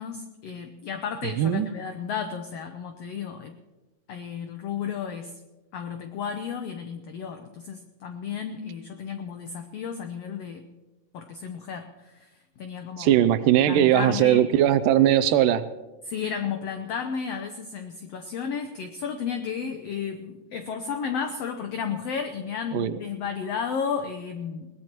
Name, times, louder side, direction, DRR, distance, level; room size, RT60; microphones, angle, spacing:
voice 1, 0.0-3.5 4.1-5.3 5.7-10.6 11.1-13.1 13.7-14.4 16.0-24.7, left 6 dB, 90° left, 6 dB, 1.4 m, -33 dB
voice 2, 1.4-1.7 13.0-15.7 22.7-23.0, right 11 dB, 80° right, 13 dB, 2.1 m, -20 dB
21.5 x 18.5 x 3.0 m, 1.1 s
omnidirectional pair, 3.9 m